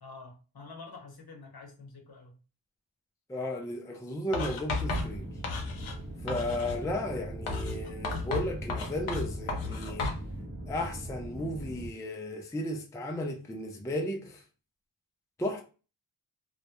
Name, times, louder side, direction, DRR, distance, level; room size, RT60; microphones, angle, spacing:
voice 1, 0.0-2.4 6.2-6.4, left 3 dB, 50° left, 0.9 m, -48 dB
voice 2, 3.3-5.2 6.2-10.1 10.7-14.4 15.4-15.6, left 1 dB, 5° left, 0.4 m, -34 dB
Writing, 4.3-6.0 6.3-6.8 7.5-10.2, left 3 dB, 85° left, 0.7 m, -33 dB
sound 1, 4.8-11.9, right 1 dB, 25° right, 0.8 m, -41 dB
2.2 x 2.0 x 2.8 m
cardioid pair, 40°, 48 cm